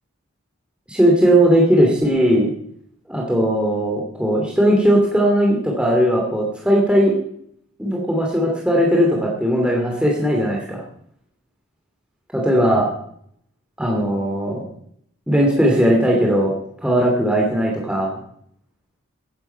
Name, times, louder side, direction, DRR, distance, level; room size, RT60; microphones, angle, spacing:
voice 1, 0.9-2.5 3.1-7.1 7.8-10.8 12.3-12.9 13.8-14.6 15.3-16.5 16.8-18.2, equal, 5° right, -2 dB, 2.6 m, -18 dB
15.0 x 10.5 x 5.7 m, 0.67 s
head